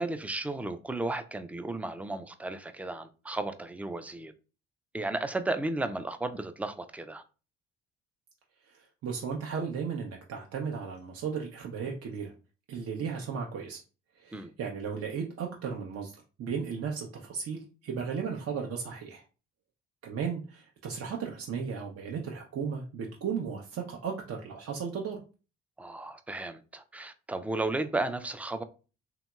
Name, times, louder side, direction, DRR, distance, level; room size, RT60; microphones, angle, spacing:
voice 1, 0.0-4.3 4.9-7.2 14.3-14.5 25.8-28.6, right 2 dB, 5° right, 0.3 m, -34 dB
voice 2, 9.0-12.3 12.7-13.8 14.2-19.2 20.0-25.2, right 6 dB, 55° right, 0.6 m, -35 dB
2.9 x 2.8 x 2.2 m
supercardioid pair, 55°, 30 cm